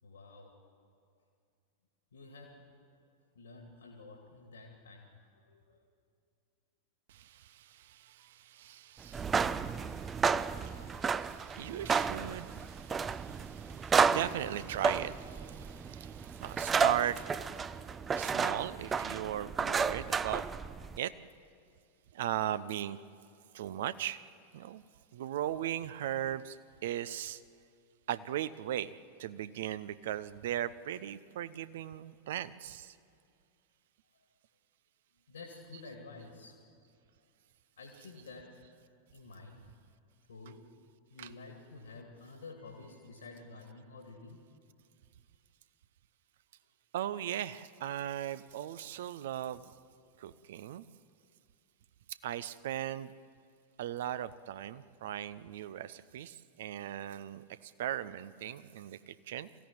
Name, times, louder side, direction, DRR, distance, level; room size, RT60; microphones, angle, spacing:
voice 1, 0.0-0.6 2.1-2.7 3.3-5.8 35.3-36.6 37.8-38.9 39.1-39.6 40.3-40.7 41.1-44.4, left 3 dB, 70° left, 2 dB, 2.3 m, -50 dB
voice 2, 7.1-17.9 18.1-20.4 21.0-21.1 22.1-23.0 23.5-24.2 24.5-24.8 25.1-26.6 26.8-27.4 28.1-28.9 29.2-33.0 35.7-35.8 37.9-38.1 41.2-41.3 46.9-49.7 50.2-50.8 52.1-53.1 53.8-59.5, right 11 dB, 55° right, 16 dB, 0.7 m, -38 dB
sound 1, 9.1-21.0, right 5 dB, 20° right, 0.5 m, -32 dB
22.0 x 15.5 x 9.4 m, 2.3 s
figure-of-eight pair, 90°, 0 cm